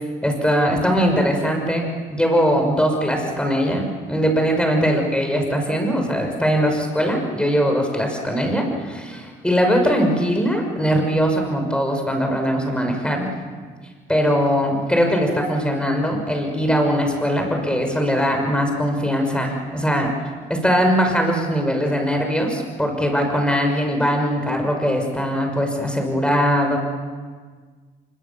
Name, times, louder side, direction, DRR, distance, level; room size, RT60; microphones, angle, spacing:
voice 1, 0.2-13.3 14.1-20.1 20.5-26.8, equal, 5° left, 3 dB, 5.8 m, -21 dB
25.0 x 23.0 x 7.0 m, 1.5 s
cardioid pair, 90°, 20 cm